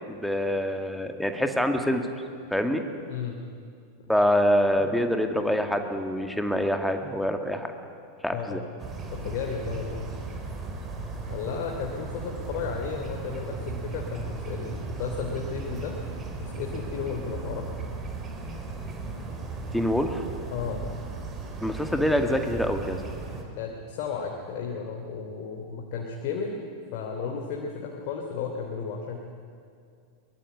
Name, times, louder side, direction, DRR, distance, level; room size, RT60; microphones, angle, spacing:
voice 1, 0.1-2.1 2.5-2.9 4.1-7.7 8.2-8.6 19.7-20.2 21.6-23.2, equal, ahead, 5 dB, 2.2 m, -25 dB
voice 2, 3.1-3.4 4.8-4.9 8.3-8.6 9.1-10.1 11.3-16.0 16.4-17.7 20.5-20.9 23.6-26.6 26.9-29.2, left 6 dB, 45° left, 1 dB, 3.0 m, -34 dB
sound 1, 8.8-23.4, right 3 dB, 25° right, 4.3 m, -36 dB
23.0 x 21.5 x 9.8 m, 2.3 s
figure-of-eight pair, 90°, 0 cm